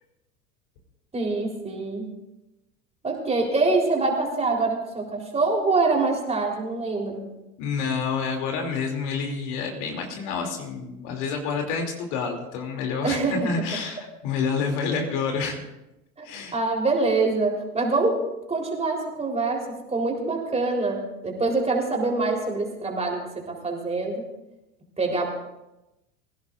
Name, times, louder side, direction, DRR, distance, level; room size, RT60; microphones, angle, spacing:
voice 1, 1.1-2.1 3.0-7.2 13.0-13.3 16.2-18.2 18.5-23.2 23.5-24.2 25.0-25.3, right 3 dB, 15° right, 0 dB, 3.8 m, -25 dB
voice 2, 7.6-15.6 16.2-16.6, left 5 dB, 50° left, 2 dB, 2.9 m, -28 dB
24.5 x 16.5 x 2.5 m, 0.93 s
figure-of-eight pair, 80°, 45 cm